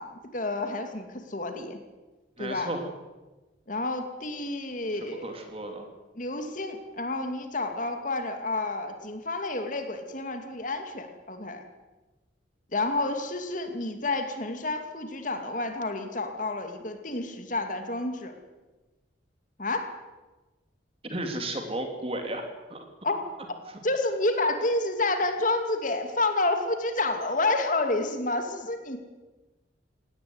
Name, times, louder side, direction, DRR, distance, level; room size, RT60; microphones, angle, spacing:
voice 1, 0.0-1.8 2.4-2.7 3.7-5.3 6.2-11.6 12.7-18.3 19.6-19.9 23.0-23.2 23.8-29.0, left 2 dB, 45° left, 6 dB, 2.6 m, -29 dB
voice 2, 2.4-2.9 5.0-5.9 21.0-22.8, right 1 dB, 30° right, 5 dB, 3.3 m, -34 dB
19.0 x 18.0 x 9.7 m, 1.2 s
head